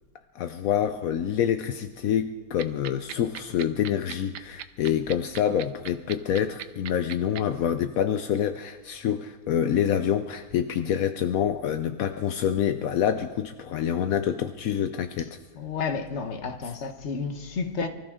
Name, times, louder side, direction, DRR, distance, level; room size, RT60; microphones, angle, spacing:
voice 1, 0.3-15.4 16.6-16.7, left 9 dB, 70° left, 0.8 m, -27 dB
sound 1, 2.6-7.4, right 11 dB, 70° right, 1.1 m, -37 dB
voice 2, 15.5-17.9, left 5 dB, 40° left, 1.2 m, -31 dB
24.0 x 14.0 x 3.7 m
omnidirectional pair, 2.1 m